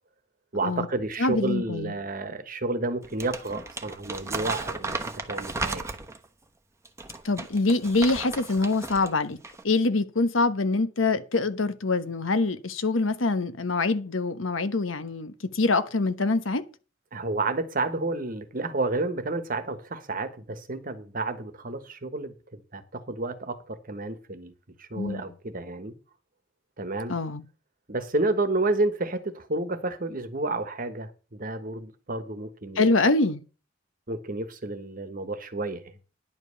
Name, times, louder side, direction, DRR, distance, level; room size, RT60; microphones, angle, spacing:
voice 1, 0.5-6.0 17.1-24.5 24.8-25.9 26.8-27.1 27.9-33.0 34.1-35.9, right 2 dB, 45° right, 1.3 m, -30 dB
voice 2, 1.2-1.9 7.2-9.4 9.6-16.6 25.0-25.2 27.1-27.4 32.8-33.4, left 3 dB, 75° left, 1.1 m, -25 dB
Crumpling crinkling, 3.0-6.3 6.9-9.1 9.4-9.6, right 3 dB, 15° right, 1.0 m, -35 dB
10.5 x 5.4 x 8.0 m
head